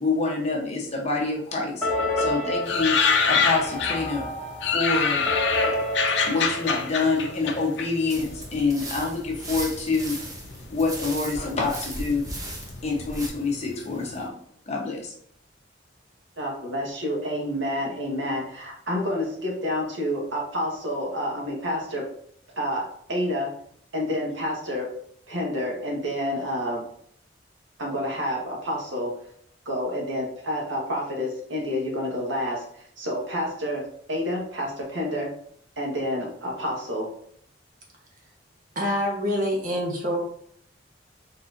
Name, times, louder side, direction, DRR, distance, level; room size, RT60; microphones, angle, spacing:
voice 1, 0.0-3.0 3.3-4.3 4.7-5.3 6.1-10.2 10.7-12.3 12.8-14.3 14.7-15.1, left 3 dB, 35° left, -1 dB, 0.9 m, -27 dB
sound 1, 1.8-7.6, left 1 dB, 5° left, 1.6 m, -30 dB
sound 2, 2.7-4.2 4.6-8.5 8.7-9.6 10.3-10.8 11.1-11.2 11.4-13.7 14.0-14.1, left 5 dB, 65° left, 0.6 m, -25 dB
sound 3, 8.1-13.3, right 1 dB, 20° right, 0.8 m, -37 dB
voice 2, 16.4-22.1 22.6-23.5 23.9-24.9 25.3-26.8 27.8-29.2 29.6-35.3 35.8-37.1, equal, 80° right, -1 dB, 1.4 m, -29 dB
voice 3, 38.7-40.2, equal, 45° right, 0 dB, 1.1 m, -26 dB
4.3 x 4.2 x 2.6 m, 0.64 s
head